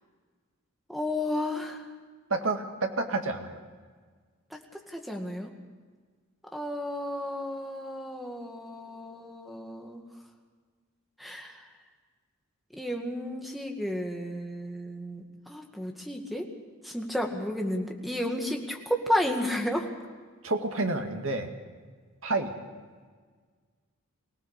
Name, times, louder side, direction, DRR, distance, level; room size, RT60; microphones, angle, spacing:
voice 1, 0.9-1.9 4.5-5.5 6.5-10.0 11.2-11.6 12.7-16.5 16.8-19.9, left 1 dB, ahead, 2 dB, 2.1 m, -32 dB
voice 2, 2.3-3.6 20.4-21.5 22.2-22.5, right 3 dB, 70° right, 4 dB, 2.1 m, -29 dB
24.0 x 17.5 x 6.7 m, 1.5 s
head